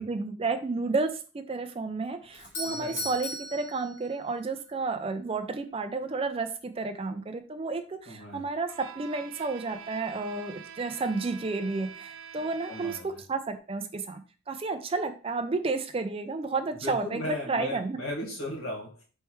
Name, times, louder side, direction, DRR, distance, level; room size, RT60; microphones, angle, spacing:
voice 1, 0.0-18.0, right 3 dB, 25° right, 9 dB, 0.3 m, -31 dB
Doorbell, 2.3-4.5, left 1 dB, 60° left, 1.2 m, -38 dB
voice 2, 2.6-3.0 8.1-8.4 12.7-13.2 16.8-19.0, left 1 dB, 90° left, -2 dB, 1.8 m, -36 dB
Bowed string instrument, 8.7-13.3, right 8 dB, 85° right, 0.5 m, -46 dB
4.5 x 3.2 x 3.1 m, 0.36 s
head